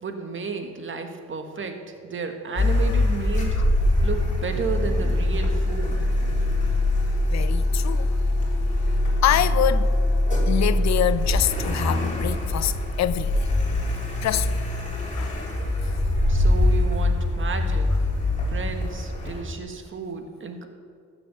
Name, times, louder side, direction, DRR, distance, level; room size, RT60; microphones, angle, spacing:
voice 1, 0.0-3.6 4.0-6.0 16.3-17.9 18.5-20.7, right 5 dB, 40° right, 1.6 m, -32 dB
Car, 2.5-19.4, left 1 dB, 25° left, 3.7 m, -23 dB
voice 2, 7.3-8.1 9.2-10.0 10.5-13.5 14.2-14.5 15.1-15.4, left 12 dB, 65° left, 0.6 m, -25 dB
13.5 x 7.9 x 6.9 m
cardioid pair, 90°, 30 cm